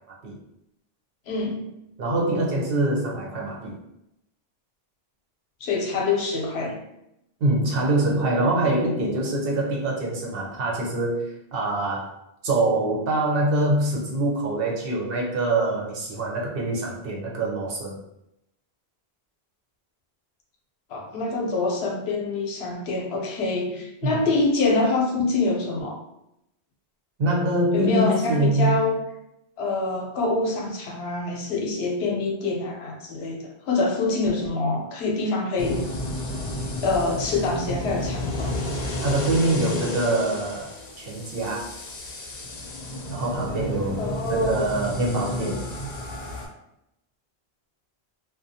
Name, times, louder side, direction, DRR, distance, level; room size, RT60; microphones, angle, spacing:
voice 1, 1.3-1.6 5.6-6.8 20.9-26.0 27.7-29.0 29.6-35.9 36.6-38.7 44.0-44.9, left 3 dB, 80° left, 0 dB, 0.8 m, -25 dB
voice 2, 2.0-3.7 7.4-12.1 12.4-18.0 24.0-24.2 27.2-28.8 39.0-41.7 43.1-45.6, right 2 dB, 70° right, -2 dB, 0.8 m, -24 dB
sound 1, 35.6-46.5, left 1 dB, 55° left, 0.5 m, -32 dB
2.4 x 2.1 x 2.6 m, 0.83 s
omnidirectional pair, 1.0 m